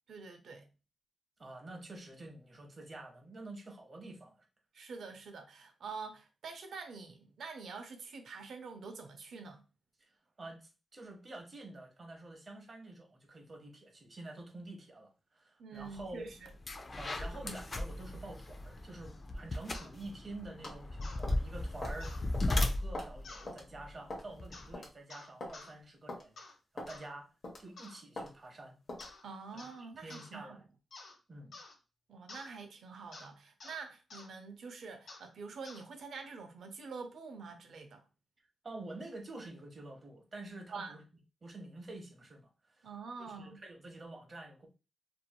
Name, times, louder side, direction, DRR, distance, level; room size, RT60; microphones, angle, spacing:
voice 1, 0.1-0.7 4.7-9.6 15.6-16.5 29.2-30.6 32.1-38.0 40.7-41.0 42.8-43.6, right 4 dB, 80° right, 0.5 m, -46 dB
voice 2, 1.4-4.5 10.0-16.3 17.0-22.2 22.4-26.4 26.7-27.3 27.6-28.8 29.5-29.7 29.9-30.6 31.3-31.6 38.6-41.0 41.4-42.9 43.2-44.7, right 2 dB, 35° right, 0.8 m, -48 dB
sound 1, 15.9-16.1 16.5-24.7, left 1 dB, 35° left, 0.4 m, -36 dB
sound 2, 19.7-19.9 21.0-21.2 22.0-22.2 23.2-23.5 24.5-24.7 25.1-25.7 26.4-26.6 26.9-27.1 27.8-28.0 29.0-29.2 29.6-29.8 30.1-30.3 30.9-31.2 31.5-31.7 32.3-32.5 33.1-33.3 33.6-33.8 34.1-34.3 35.1-35.3 35.6-35.8, left 3 dB, 75° left, 1.0 m, -51 dB
sound 3, 20.6-20.8 21.2-21.4 21.8-22.0 22.3-22.5 22.9-23.2 23.5-23.6 24.1-24.3 24.7-24.9 25.4-25.6 26.1-26.2 26.8-27.0 27.4-27.7 28.2-28.3 28.9-29.1, left 1 dB, 50° left, 0.9 m, -42 dB
2.9 x 2.6 x 2.2 m
wide cardioid pair, 120°, 0 cm